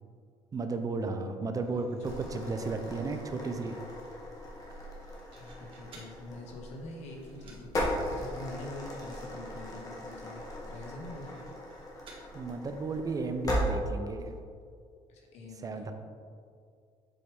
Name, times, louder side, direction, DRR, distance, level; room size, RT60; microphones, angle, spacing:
voice 1, 0.5-3.8 12.3-14.3 15.6-15.9, right 3 dB, 30° right, 6 dB, 0.6 m, -34 dB
sound 1, 1.6-6.2 6.6-7.0 7.2-7.7 8.0-8.1 8.4-8.5 8.8-9.2 9.4-9.6 10.0-10.1 10.8-12.2, right 3 dB, 55° right, 1.5 m, -57 dB
sound 2, 2.0-13.7, left 1 dB, 30° left, 1.6 m, -38 dB
voice 2, 2.1-3.2 5.3-11.5 15.1-15.9, left 2 dB, 80° left, 1 dB, 1.2 m, -46 dB
7.7 x 4.7 x 3.5 m, 2.2 s
cardioid pair, 105°, 11 cm